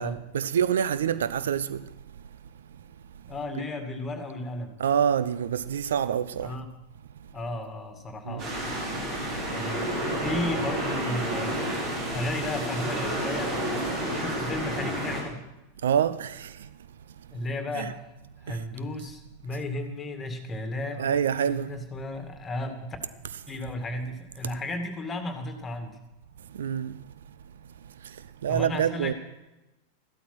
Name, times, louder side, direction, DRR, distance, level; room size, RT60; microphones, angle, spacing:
voice 1, 0.0-1.9 4.8-6.5 8.3-8.4 15.8-16.7 17.7-17.9 18.5-18.6 21.0-21.7 26.5-27.0 28.0-29.1, right 8 dB, 65° right, 0.6 m, -27 dB
voice 2, 3.2-4.8 6.4-6.7 7.3-8.6 9.5-9.9 10.2-11.8 12.1-13.5 14.0-15.4 17.3-18.0 18.4-21.1 21.4-23.0 23.5-26.0 28.5-29.1, left 2 dB, 20° left, 2.2 m, -34 dB
sound 1, 8.4-15.2, right 1 dB, 40° right, 5.5 m, -30 dB
14.5 x 12.5 x 6.2 m
figure-of-eight pair, 90°, 0 cm